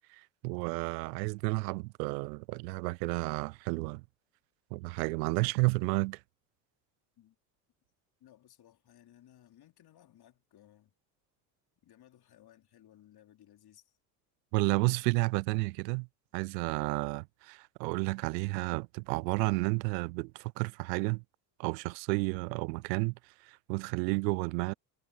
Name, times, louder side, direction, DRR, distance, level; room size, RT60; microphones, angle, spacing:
voice 1, 0.1-4.0 4.7-6.2 14.5-16.1 16.3-21.2 21.6-23.1 23.4-24.7, right 27 dB, 80° right, 0.5 m, -31 dB
voice 2, 8.2-10.9 11.8-13.9, left 12 dB, 50° left, 4.0 m, -60 dB
hypercardioid pair, 80°, 49 cm